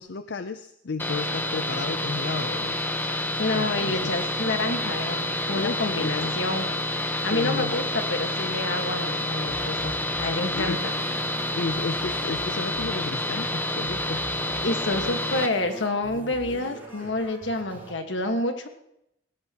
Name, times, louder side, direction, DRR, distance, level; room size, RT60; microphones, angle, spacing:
voice 1, 0.0-2.8 3.5-4.3 5.5-6.4 7.3-7.8 10.5-10.8 11.6-14.2, left 3 dB, 70° left, 10 dB, 0.5 m, -32 dB
sound 1, 1.0-15.5, left 1 dB, 10° left, 1.0 m, -28 dB
voice 2, 3.4-6.7 7.2-7.8 8.1-10.9 14.6-18.7, left 2 dB, 90° left, 5 dB, 1.6 m, -28 dB
sound 2, 9.5-17.9, equal, 10° right, 4.4 m, -43 dB
19.0 x 16.5 x 3.0 m, 0.81 s
head